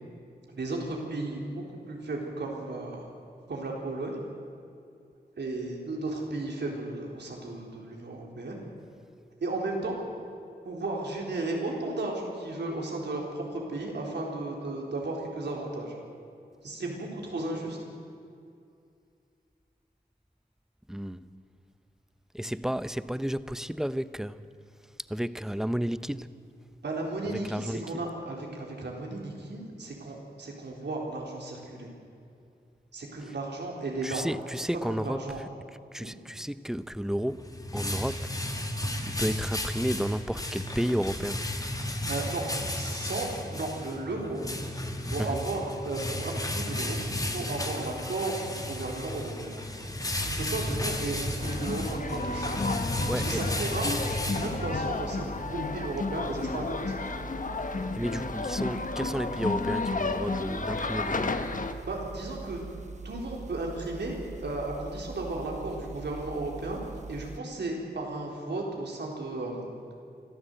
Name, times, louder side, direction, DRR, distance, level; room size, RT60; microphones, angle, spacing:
voice 1, 0.5-3.0 3.5-4.2 5.4-8.6 9.4-10.0 10.6-15.9 16.6-17.8 26.8-31.9 32.9-34.2 34.6-35.4 36.0-36.2 42.1-42.4 42.7-44.4 45.0-49.5 50.2-52.5 53.1-53.9 54.3-56.9 61.9-62.6 63.0-66.8 67.1-69.7, right 2 dB, 85° right, 4.0 m, -34 dB
voice 2, 20.9-21.4 22.3-24.5 25.1-26.4 27.3-28.0 33.2-33.3 34.0-35.5 35.9-38.3 38.8-41.5 45.2-45.4 52.6-52.8 53.1-53.5 57.9-61.4, equal, 5° right, 0.7 m, -32 dB
sound 1, 37.1-55.0, left 1 dB, 20° left, 1.9 m, -33 dB
sound 2, 50.1-67.4, right 3 dB, 40° right, 1.0 m, -43 dB
sound 3, 51.4-61.7, left 3 dB, 50° left, 1.2 m, -32 dB
24.5 x 14.5 x 8.0 m
wide cardioid pair, 75°, 17 cm